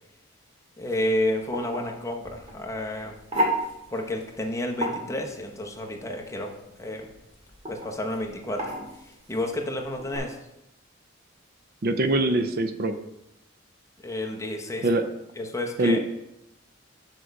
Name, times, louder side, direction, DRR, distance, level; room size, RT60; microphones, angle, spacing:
voice 1, 0.8-3.2 3.9-6.5 6.8-7.1 7.7-8.7 9.0-10.4 14.0-14.9 15.4-16.0, left 1 dB, 15° left, 1 dB, 0.9 m, -30 dB
sound 1, 0.9-10.2, right 1 dB, 35° right, 2.0 m, -34 dB
voice 2, 11.8-13.0 14.8-15.0 15.8-16.0, right 2 dB, 50° right, 9 dB, 0.5 m, -23 dB
6.6 x 6.2 x 4.6 m, 0.87 s
head